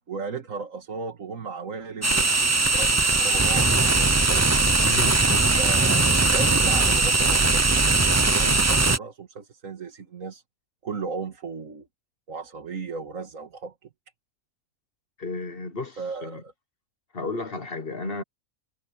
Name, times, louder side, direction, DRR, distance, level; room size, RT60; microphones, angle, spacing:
voice 1, 0.1-2.3 2.7-4.5 5.5-10.4 10.8-11.9 12.3-13.9 16.0-16.5, right 4 dB, 70° right, 2.2 m, -35 dB
sound 1, 2.0-9.0, right 3 dB, 25° right, 0.4 m, -20 dB
voice 2, 4.8-5.4 15.2-16.4 17.1-18.2, left 3 dB, 45° left, 1.3 m, -33 dB
omnidirectional pair, 1.5 m